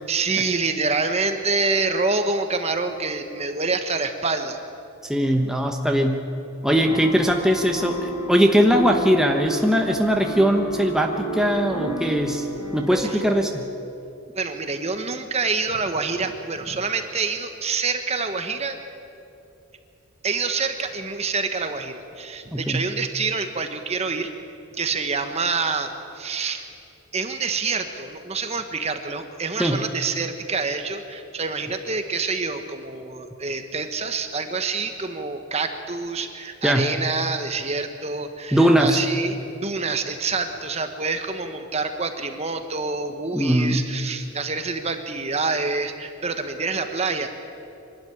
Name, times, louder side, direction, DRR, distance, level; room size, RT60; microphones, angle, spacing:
voice 1, 0.1-4.6 13.0-13.2 14.3-18.8 20.2-24.3 24.7-25.9 26.2-26.6 27.1-47.3, right 4 dB, 30° right, 7 dB, 1.2 m, -27 dB
voice 2, 5.0-6.2 6.6-12.5 12.7-13.6 22.5-22.8 29.6-29.8 36.6-36.9 38.5-39.0 43.3-43.8, equal, 5° right, 2 dB, 1.0 m, -20 dB
sound 1, 6.6-13.3, right 2 dB, 35° left, 7.4 m, -31 dB
24.0 x 12.5 x 9.8 m, 2.7 s
head